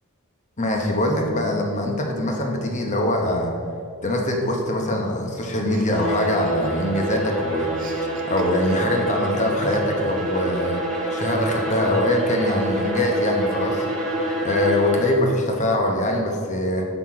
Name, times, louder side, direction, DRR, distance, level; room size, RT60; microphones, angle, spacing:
voice 1, 0.6-3.5 4.0-7.9 8.3-10.8 11.1-13.8 14.4-16.9, left 1 dB, 35° left, 1 dB, 0.9 m, -23 dB
Chuckle chortle, 5.7-7.1 7.3-9.0 9.7-10.3, right 2 dB, 40° right, 0.7 m, -41 dB
Bowed string instrument, 5.8-15.3, right 1 dB, 5° left, 1.4 m, -27 dB
8.1 x 5.8 x 4.7 m, 2.3 s
head